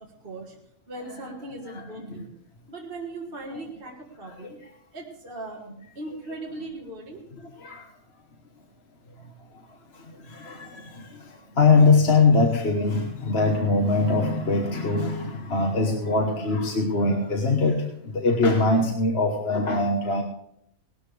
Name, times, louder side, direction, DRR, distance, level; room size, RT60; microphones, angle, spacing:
voice 1, 0.2-0.5 0.9-2.3 2.7-4.6 4.9-5.6 6.0-7.3, right 2 dB, 40° right, -2 dB, 1.9 m, -38 dB
voice 2, 1.7-2.2 4.4-4.5 7.6-7.8 10.2-20.2, left 3 dB, 50° left, 2 dB, 1.5 m, -22 dB
18.5 x 13.0 x 3.4 m, 0.72 s
omnidirectional pair, 1.5 m